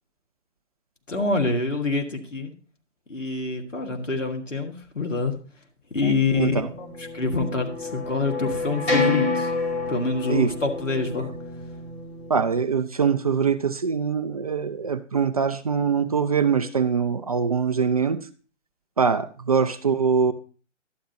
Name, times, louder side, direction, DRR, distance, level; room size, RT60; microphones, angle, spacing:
voice 1, 1.1-2.5 3.1-5.4 5.9-9.5 9.9-11.3, left 3 dB, 85° left, 3 dB, 2.0 m, -26 dB
sound 1, 6.6-12.6, left 3 dB, 55° left, 4.3 m, -29 dB
voice 2, 12.3-18.2 19.0-20.3, right 6 dB, 30° right, 11 dB, 0.4 m, -23 dB
11.5 x 9.0 x 2.9 m, 0.38 s
figure-of-eight pair, 130°, 37 cm